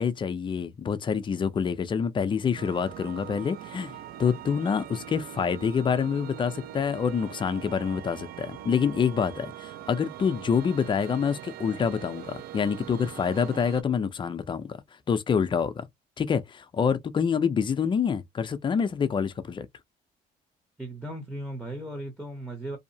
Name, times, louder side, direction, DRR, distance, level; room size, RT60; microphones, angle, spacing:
voice 1, 0.0-14.8 15.1-15.8 16.2-19.7, left 6 dB, 30° left, 0.5 m, -27 dB
sound 1, 2.6-13.8, right 11 dB, 65° right, 0.4 m, -42 dB
voice 2, 20.8-22.8, right 1 dB, ahead, 0.8 m, -36 dB
2.7 x 2.0 x 2.7 m
cardioid pair, 110°, 17 cm